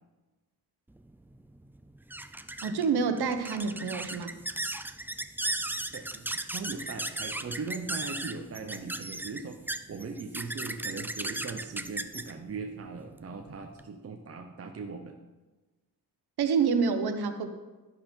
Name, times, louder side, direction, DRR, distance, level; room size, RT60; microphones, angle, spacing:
sound 1, 1.0-13.9, right 1 dB, 5° right, 0.3 m, -37 dB
voice 1, 2.6-4.4 16.4-17.5, right 5 dB, 90° right, 7 dB, 1.3 m, -27 dB
voice 2, 5.9-9.6 9.9-15.2, right 4 dB, 40° right, 4 dB, 0.8 m, -39 dB
12.0 x 11.0 x 4.5 m, 1.2 s
wide cardioid pair, 140°, 37 cm